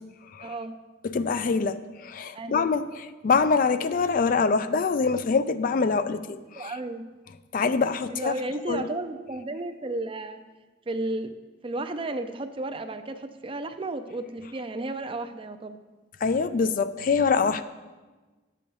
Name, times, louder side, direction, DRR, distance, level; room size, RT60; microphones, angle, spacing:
voice 1, 0.4-0.8 2.3-2.6 6.5-7.1 8.1-10.4 10.9-11.3 11.6-15.8, right 2 dB, 30° right, 9 dB, 0.5 m, -33 dB
voice 2, 1.0-6.7 7.5-8.3 8.7-8.9 16.2-17.6, left 5 dB, 50° left, 12 dB, 0.4 m, -25 dB
10.0 x 7.0 x 4.6 m, 1.3 s
head